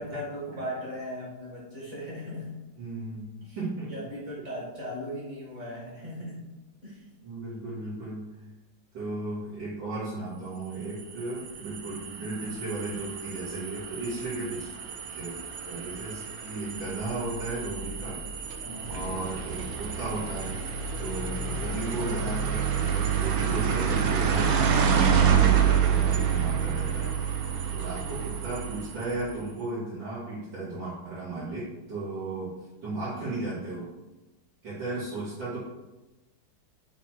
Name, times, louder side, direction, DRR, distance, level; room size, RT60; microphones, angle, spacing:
voice 1, 0.0-2.6 3.4-3.6 3.9-6.5 6.8-7.1 18.6-19.1 27.8-27.9, equal, 40° right, -6 dB, 2.3 m, -38 dB
voice 2, 2.8-3.3 3.6-3.9 7.2-8.3 8.9-14.7 15.1-15.3 15.6-18.2 18.9-20.6 21.0-32.5 32.8-33.9 34.6-35.6, right 2 dB, 85° right, -13 dB, 3.1 m, -35 dB
sound 1, 10.8-29.3, right 7 dB, 65° right, 1.0 m, -28 dB
5.8 x 4.3 x 4.5 m, 1.1 s
omnidirectional pair, 1.9 m